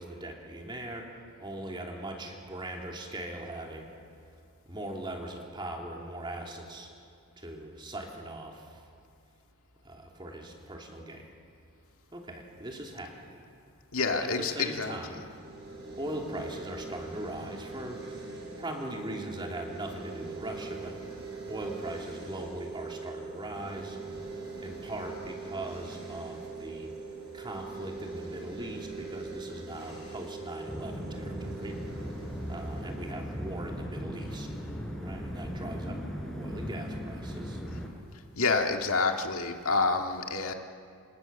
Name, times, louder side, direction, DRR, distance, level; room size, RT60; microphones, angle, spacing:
voice 1, 0.0-3.9 4.6-6.9 7.4-8.8 9.8-11.3 12.1-13.4 14.1-15.2 16.0-18.1 18.6-21.0 21.5-24.0 24.6-26.9 27.3-31.8 32.5-34.5 35.0-36.0 36.4-37.6, right 1 dB, 20° right, 1 dB, 3.1 m, -40 dB
voice 2, 13.9-15.0 38.4-40.5, left 4 dB, 75° left, 4 dB, 2.0 m, -28 dB
sound 1, 15.3-34.4, right 3 dB, 50° right, 7.5 m, -42 dB
sound 2, 30.7-37.9, equal, 5° left, 4.3 m, -38 dB
27.5 x 27.0 x 7.0 m, 2.3 s
head